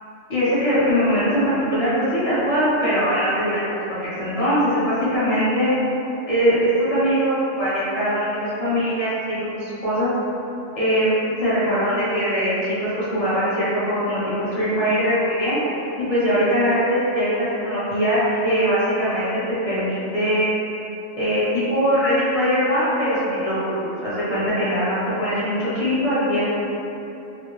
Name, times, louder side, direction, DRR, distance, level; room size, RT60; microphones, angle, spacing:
voice 1, 0.3-5.7 6.3-10.1 10.7-11.1 11.4-15.6 16.0-19.2 19.7-20.6 21.2-26.4, equal, 30° left, -12 dB, 0.9 m, -21 dB
3.3 x 2.0 x 3.0 m, 2.9 s
omnidirectional pair, 1.4 m